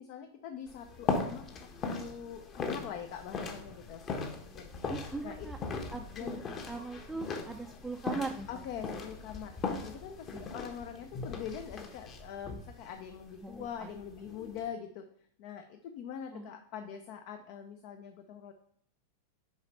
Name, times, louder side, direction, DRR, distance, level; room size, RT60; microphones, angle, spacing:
voice 1, 0.0-4.0 4.4-4.7 5.2-5.5 5.9-6.6 8.5-9.5 9.8-15.1 15.4-18.5, left 8 dB, 45° left, 6 dB, 0.6 m, -43 dB
sound 1, 0.7-14.7, left 4 dB, 30° left, 1.1 m, -39 dB
voice 2, 4.9-5.6 5.9-8.6 10.3-10.4 13.4-13.9 14.2-14.3 16.3-16.9, right 3 dB, 5° right, 2 dB, 0.5 m, -41 dB
6.4 x 4.9 x 5.4 m, 0.63 s
figure-of-eight pair, 90°, 0 cm